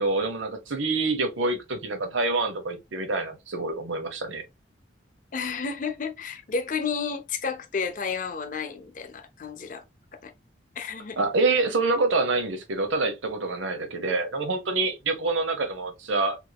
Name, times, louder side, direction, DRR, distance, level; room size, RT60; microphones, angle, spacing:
voice 1, 0.0-4.4 11.2-16.4, right 3 dB, 85° right, 1.0 m, -26 dB
voice 2, 5.3-9.8 10.2-10.3 10.8-11.2, left 5 dB, 45° left, 0.5 m, -31 dB
3.5 x 3.3 x 2.3 m
head